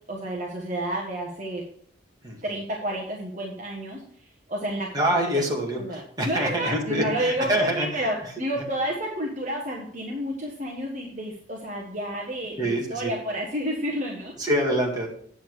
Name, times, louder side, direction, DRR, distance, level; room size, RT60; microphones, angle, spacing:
voice 1, 0.1-1.7 2.4-5.4 5.8-14.3, right 1 dB, 40° right, -1 dB, 1.3 m, -30 dB
voice 2, 4.9-8.1 8.6-8.7 12.6-13.1 14.4-15.1, right 1 dB, 20° right, -2 dB, 2.0 m, -26 dB
8.9 x 7.2 x 4.8 m, 0.62 s
head